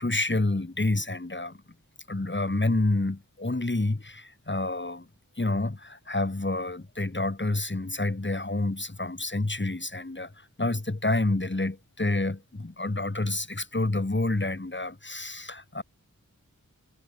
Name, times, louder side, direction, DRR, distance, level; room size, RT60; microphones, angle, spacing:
voice 1, 0.0-1.6 2.1-5.1 5.4-15.8, left 2 dB, 35° left, 6.5 m, -28 dB
wide cardioid pair, 75°, 33 cm